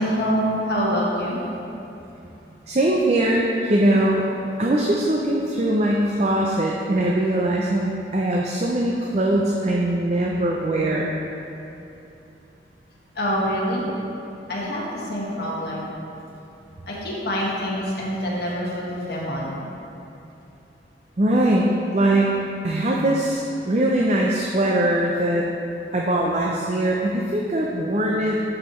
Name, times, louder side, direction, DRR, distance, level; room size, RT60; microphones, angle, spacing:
voice 1, 0.0-1.4 13.1-13.8 14.5-15.9 16.9-19.6, equal, 60° left, -5 dB, 1.6 m, -25 dB
voice 2, 2.7-4.2 4.6-11.1 21.2-22.4 22.6-25.4 25.9-28.4, right 1 dB, 40° right, -2 dB, 0.5 m, -21 dB
12.0 x 4.9 x 3.1 m, 2.8 s
head